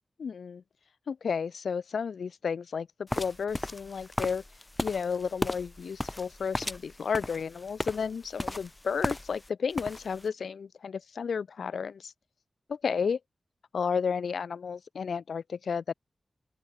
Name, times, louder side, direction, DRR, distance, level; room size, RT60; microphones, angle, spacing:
voice 1, 0.2-0.6 1.1-4.4 4.8-12.1 12.7-13.2 13.7-15.9, left 6 dB, 85° left, 0.7 m, -32 dB
sound 1, 3.1-9.5 9.7-10.2, left 1 dB, 15° left, 1.0 m, -35 dB
open air
wide cardioid pair, 70°, 0 cm